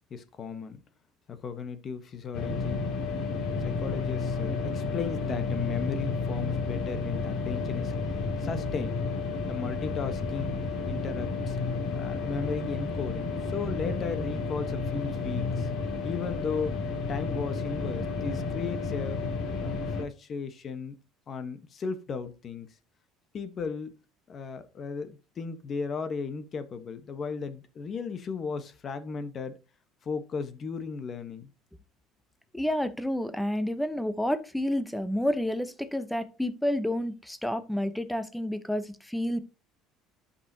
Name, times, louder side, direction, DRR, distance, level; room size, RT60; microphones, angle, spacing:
voice 1, 0.1-0.8 1.3-2.8 3.6-7.9 8.4-9.0 9.5-10.5 10.9-11.6 11.9-15.7 16.0-16.8 17.1-19.2 19.6-21.0 21.3-22.7 23.3-24.0 24.3-29.6 30.0-31.5, left 5 dB, 35° left, 1.0 m, -35 dB
sound 1, 2.3-20.0, left 4 dB, 55° left, 2.3 m, -31 dB
voice 2, 32.5-39.4, left 1 dB, 5° left, 0.8 m, -29 dB
11.5 x 5.5 x 2.7 m
cardioid pair, 130°, 0 cm